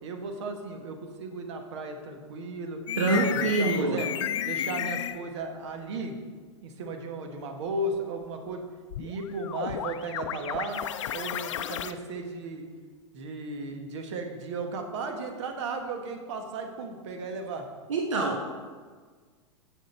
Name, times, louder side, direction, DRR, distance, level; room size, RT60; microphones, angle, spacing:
voice 1, 0.0-2.8 3.1-4.1 4.4-6.2 6.6-8.6 9.0-10.8 11.1-12.7 13.1-17.6, right 3 dB, 65° right, 4 dB, 1.2 m, -35 dB
sound 1, 2.9-5.2 8.9-11.9, left 10 dB, 75° left, 0.4 m, -33 dB
voice 2, 3.0-4.0 17.9-18.4, right 3 dB, 85° right, 1 dB, 0.9 m, -25 dB
7.5 x 6.5 x 4.3 m, 1.5 s
hypercardioid pair, 110°, 16 cm